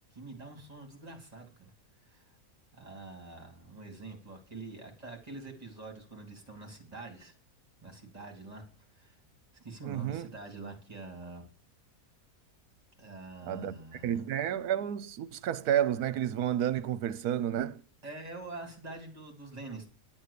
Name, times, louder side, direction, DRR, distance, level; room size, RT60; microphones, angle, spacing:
voice 1, 0.1-1.7 2.0-2.3 2.7-7.3 7.8-8.6 8.9-9.2 9.5-11.5 13.0-14.3 18.0-19.9, right 3 dB, 25° right, 2.9 m, -45 dB
voice 2, 9.8-10.3 13.5-17.8, right 10 dB, 75° right, 1.2 m, -31 dB
10.5 x 8.6 x 6.7 m
omnidirectional pair, 1.7 m